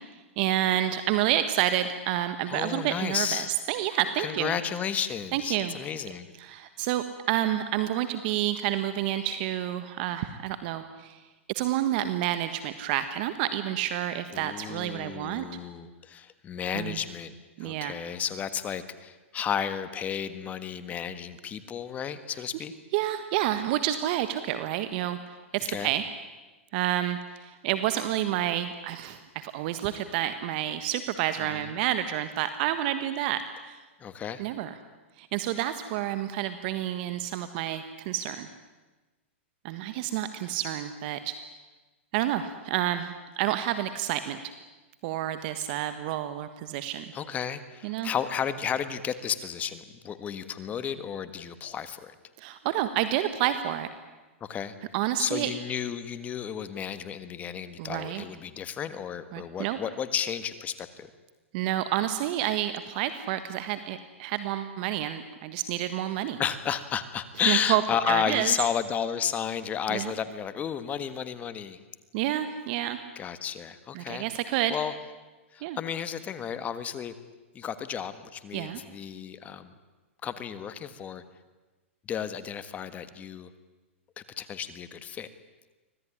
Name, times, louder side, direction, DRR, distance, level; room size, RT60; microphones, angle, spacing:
voice 1, 0.0-4.6 5.3-5.7 6.4-11.2 11.5-15.4 16.7-17.0 17.6-17.9 22.9-26.0 26.7-33.8 34.4-34.7 35.2-38.5 39.6-41.3 42.1-44.4 45.0-47.1 47.8-48.1 52.4-53.9 54.9-55.5 57.8-58.2 59.3-59.8 61.5-66.4 67.5-67.8 68.1-68.5 69.9-70.1 72.1-73.0 73.9-74.8 75.6-75.8 78.5-78.8, right 12 dB, 45° right, 11 dB, 1.5 m, -29 dB
voice 2, 2.4-3.6 4.2-6.3 14.3-17.3 17.6-22.7 25.6-25.9 31.4-31.7 34.0-34.4 47.1-52.1 54.4-54.7 55.2-61.1 66.4-71.8 73.1-74.2 74.7-74.9 75.5-77.1 77.5-79.7 80.2-81.2 82.1-83.5 84.2-85.3, left 8 dB, 20° left, 12 dB, 1.6 m, -32 dB
25.0 x 17.5 x 10.0 m, 1.2 s
hypercardioid pair, 140°, 7 cm